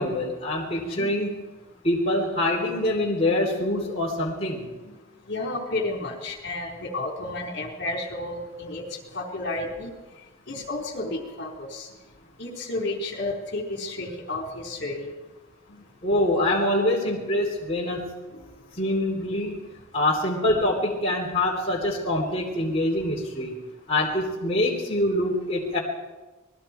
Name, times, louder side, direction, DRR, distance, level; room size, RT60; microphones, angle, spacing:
voice 1, 0.0-1.3 1.8-4.7 16.0-18.1 18.8-19.5 19.9-23.5 23.9-25.8, left 1 dB, 30° left, -3 dB, 3.4 m, -25 dB
voice 2, 0.7-1.1 4.8-5.0 5.3-8.8 9.1-9.9 10.5-11.9 12.4-15.1 15.7-15.8 18.3-18.4 22.6-22.7, left 2 dB, 55° left, 0 dB, 4.3 m, -32 dB
27.5 x 21.0 x 4.6 m, 1.2 s
head